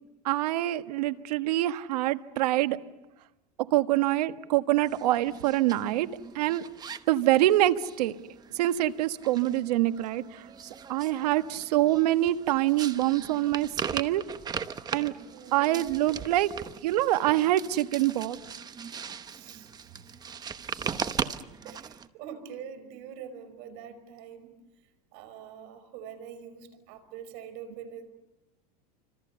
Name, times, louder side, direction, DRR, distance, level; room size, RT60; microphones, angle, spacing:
voice 1, 0.2-2.8 3.6-6.1 6.3-6.6 7.1-8.2 8.5-10.5 10.9-14.2 14.9-15.1 15.5-16.5 16.8-18.4, right 15 dB, 85° right, 10 dB, 1.4 m, -25 dB
sound 1, 4.8-22.1, right 7 dB, 20° right, 1.0 m, -39 dB
voice 2, 15.3-15.6 19.3-19.9 21.6-24.6 25.1-28.1, right 8 dB, 60° right, 11 dB, 5.2 m, -44 dB
29.5 x 26.0 x 6.9 m, 0.97 s
supercardioid pair, 140°, 20 cm